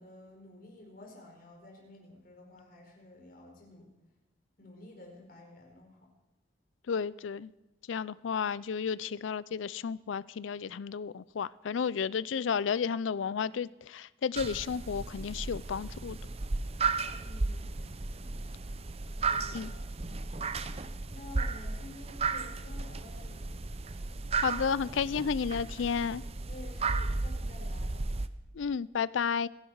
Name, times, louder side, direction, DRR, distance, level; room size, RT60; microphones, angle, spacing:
voice 1, 0.0-3.9 4.6-6.1 17.1-18.2 19.2-19.8 20.2-20.4 21.1-23.7 26.5-28.1, left 2 dB, 50° left, 0 dB, 4.8 m, -51 dB
voice 2, 6.9-7.5 7.9-16.2 19.5-19.7 24.4-26.2 28.5-29.5, left 6 dB, 80° left, 19 dB, 0.4 m, -32 dB
sound 1, 14.3-28.3, right 3 dB, 30° right, 0.6 m, -34 dB
26.0 x 11.0 x 4.7 m, 1.0 s
head